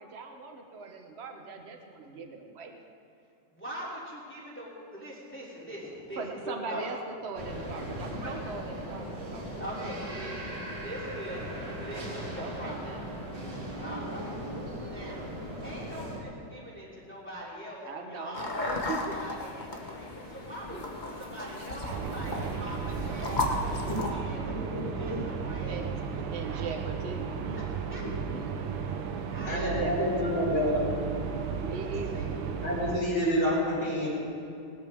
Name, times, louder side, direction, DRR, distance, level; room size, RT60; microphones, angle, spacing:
voice 1, 0.0-2.8 6.2-9.4 12.4-13.2 14.7-15.1 17.8-18.4 18.7-19.2 20.7-20.8 21.5-22.6 23.8-25.2 25.7-26.0 26.3-28.8 29.5-30.4 31.6-32.3, right 4 dB, 40° right, 4 dB, 1.3 m, -41 dB
voice 2, 3.5-6.9 8.2-8.3 9.6-13.0 13.8-14.4 14.9-15.3 15.6-23.6 24.1-24.5 25.0-25.8 27.9-28.0 29.3-29.8 31.8-32.2, equal, 5° left, -6 dB, 2.9 m, -42 dB
sound 1, 7.4-16.2, equal, 60° right, 2.8 m, -38 dB
sound 2, 18.3-24.1, left 2 dB, 30° left, 1.1 m, -35 dB
sound 3, 21.9-33.0, right 6 dB, 80° right, 1.7 m, -34 dB
voice 3, 24.7-25.2 28.0-28.1 29.4-30.9 32.6-34.1, equal, 65° left, -13 dB, 5.1 m, -28 dB
19.5 x 13.0 x 3.7 m, 2.6 s
omnidirectional pair, 2.1 m